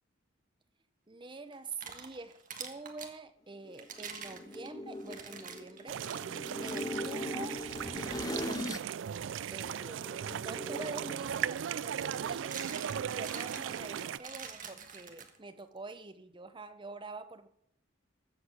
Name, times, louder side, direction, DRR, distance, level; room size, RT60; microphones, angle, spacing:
voice 1, 1.1-6.0 6.6-7.6 7.9-8.7 9.5-12.6 13.1-17.5, right 3 dB, 25° right, 10 dB, 0.8 m, -46 dB
sound 1, 1.5-3.2 3.7-7.2 7.7-7.8 8.5-8.7 10.8-10.9 12.1-15.6, right 6 dB, 45° right, 1.5 m, -46 dB
sound 2, 3.6-8.9 9.3-11.1, left 1 dB, 20° left, 0.6 m, -40 dB
sound 3, 5.9-14.2, right 8 dB, 70° right, 0.4 m, -37 dB
14.5 x 7.8 x 6.1 m, 0.74 s
head